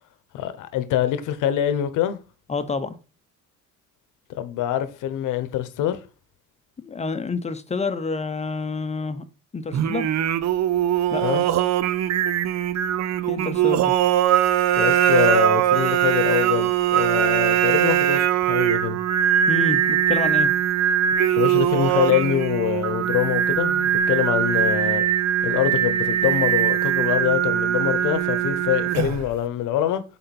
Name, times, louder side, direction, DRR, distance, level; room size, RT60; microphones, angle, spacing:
voice 1, 0.3-2.2 4.4-6.0 11.2-11.4 14.8-19.0 21.3-25.0 25.4-30.0, left 11 dB, 85° left, 1.0 m, -24 dB
voice 2, 2.5-3.0 6.8-9.2 9.5-10.1 11.1-11.2 13.3-13.9 19.5-20.5, left 4 dB, 20° left, 0.7 m, -28 dB
Singing, 9.7-29.3, right 10 dB, 60° right, 0.6 m, -21 dB
7.7 x 4.0 x 4.1 m
cardioid pair, 120°, 30 cm